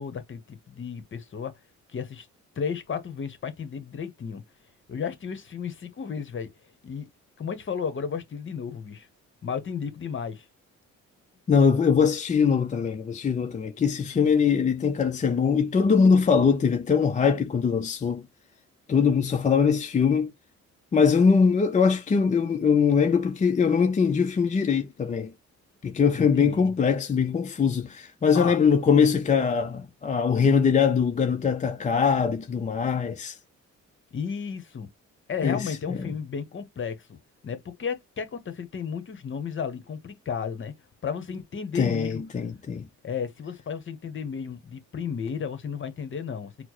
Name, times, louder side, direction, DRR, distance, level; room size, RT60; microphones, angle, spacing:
voice 1, 0.0-1.5 1.9-2.3 2.6-4.4 4.9-6.5 6.8-7.1 7.4-9.1 9.4-10.4 26.1-26.7 28.3-28.6 34.1-34.9 35.3-37.2 37.4-40.7 41.0-42.2 43.0-46.5, left 6 dB, 40° left, 1.0 m, -33 dB
voice 2, 11.5-18.2 18.9-20.3 20.9-25.3 25.8-33.4 35.4-36.0 41.7-42.9, left 6 dB, 25° left, 0.4 m, -22 dB
4.3 x 2.0 x 3.0 m
cardioid pair, 90°, 30 cm